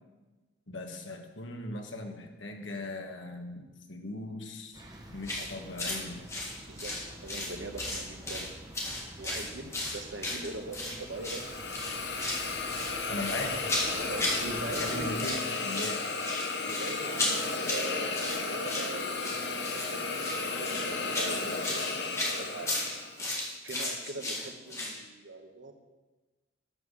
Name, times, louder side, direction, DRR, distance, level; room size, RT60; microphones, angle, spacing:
voice 1, 0.7-4.8 5.1-6.2 13.1-13.5 14.2-16.0, left 2 dB, 80° left, 3 dB, 1.5 m, -39 dB
sound 1, 4.7-15.2, right 1 dB, 20° right, 1.2 m, -48 dB
sound 2, 5.2-5.5 5.8-6.0 6.3-7.5 7.8-8.5 8.7-11.0 11.2-11.4 11.7-12.4 12.7-14.4 14.7-15.4 15.7-25.0, left 1 dB, 15° left, 1.9 m, -34 dB
voice 2, 6.7-8.6 8.9-11.4 14.0-15.2 16.6-22.7 23.6-25.7, right 2 dB, 75° right, 5 dB, 1.3 m, -42 dB
Hiss, 11.1-23.2, left 3 dB, 60° left, 1.2 m, -34 dB
12.0 x 5.7 x 6.8 m, 1.2 s
head